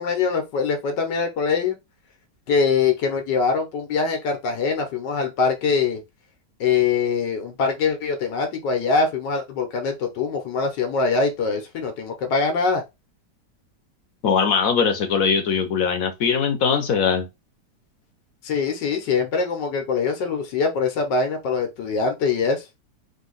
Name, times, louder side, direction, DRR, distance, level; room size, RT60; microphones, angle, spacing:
voice 1, 0.0-1.8 2.5-6.0 6.6-12.8 18.4-22.6, left 5 dB, 90° left, 1.6 m, -23 dB
voice 2, 14.2-17.3, left 6 dB, 60° left, 1.2 m, -21 dB
3.8 x 2.8 x 3.9 m
omnidirectional pair, 1.8 m